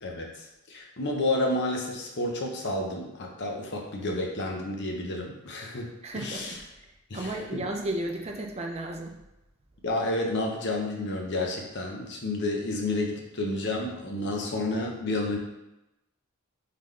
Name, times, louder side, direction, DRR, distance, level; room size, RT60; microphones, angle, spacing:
voice 1, 0.0-6.6 7.1-7.6 9.8-15.4, left 2 dB, 50° left, 0 dB, 0.8 m, -30 dB
voice 2, 6.0-9.2, right 1 dB, 30° right, 1 dB, 0.5 m, -34 dB
3.8 x 3.8 x 3.3 m, 0.93 s
head